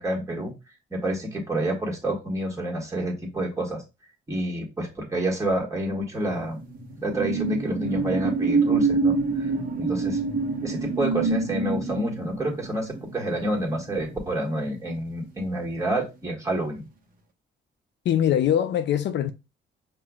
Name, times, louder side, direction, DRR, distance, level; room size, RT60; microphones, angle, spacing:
voice 1, 0.0-0.5 0.9-3.8 4.3-6.6 7.0-10.2 10.6-16.8, right 1 dB, 15° right, 1.6 m, -28 dB
sound 1, 6.2-15.2 15.6-15.8, right 4 dB, 45° right, 1.1 m, -27 dB
voice 2, 18.1-19.3, left 10 dB, 65° left, 0.4 m, -22 dB
5.6 x 2.5 x 2.3 m
cardioid pair, 90°, 20 cm